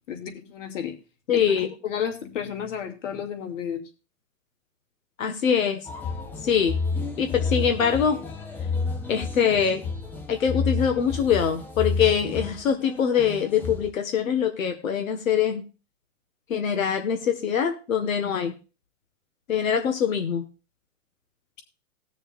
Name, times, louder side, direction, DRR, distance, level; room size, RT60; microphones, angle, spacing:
voice 1, 0.1-0.9 1.3-1.5 1.8-3.8, left 8 dB, 70° left, 5 dB, 2.7 m, -32 dB
voice 2, 1.3-1.7 5.2-5.8 6.4-6.8 7.2-8.2 9.1-9.8 10.3-15.6 16.5-18.5 19.5-20.4, left 7 dB, 90° left, 6 dB, 1.7 m, -23 dB
sound 1, 5.9-13.9, left 4 dB, 5° left, 0.4 m, -30 dB
20.0 x 6.7 x 2.5 m, 0.32 s
hypercardioid pair, 145°, 39 cm